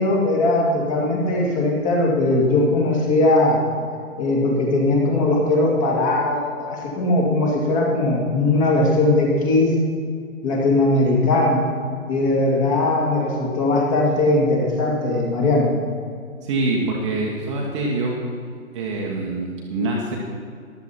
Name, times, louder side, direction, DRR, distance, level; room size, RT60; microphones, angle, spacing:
voice 1, 0.0-3.6 4.2-9.7 10.4-11.7 12.1-15.7, left 2 dB, 25° left, -1 dB, 2.3 m, -19 dB
voice 2, 16.4-18.2 18.7-20.2, right 2 dB, 20° right, -2 dB, 1.2 m, -25 dB
14.0 x 12.0 x 4.3 m, 2.2 s
figure-of-eight pair, 140°, 41 cm